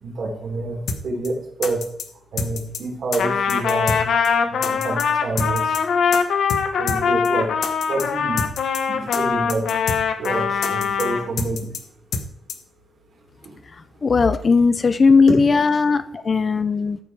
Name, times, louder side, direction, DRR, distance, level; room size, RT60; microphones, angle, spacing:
voice 1, 0.0-1.8 2.3-4.0 4.5-5.8 6.8-7.5 7.9-8.4 8.9-9.7 10.2-11.7 13.4-13.6, right 2 dB, 55° right, 0 dB, 3.3 m, -27 dB
sound 1, 0.9-1.0 1.2-1.3 1.6-2.1 2.4-2.8 3.1-3.2 3.5-4.3 4.6-5.1 5.4-5.8 6.1-6.2 6.5-6.6 6.9-7.0 7.2-7.3 7.6-8.1 8.4-8.8 9.1-9.2 9.5-10.0 10.2-10.3 10.6-11.1 11.4-11.8 12.1-12.2 12.5-12.6, left 5 dB, 85° left, 1.1 m, -27 dB
Trumpet, 3.2-11.3, left 6 dB, 65° left, 1.0 m, -22 dB
voice 2, 13.7-17.0, left 4 dB, 30° left, 13 dB, 0.4 m, -18 dB
14.0 x 4.9 x 4.7 m, 0.68 s
wide cardioid pair, 170°, 0 cm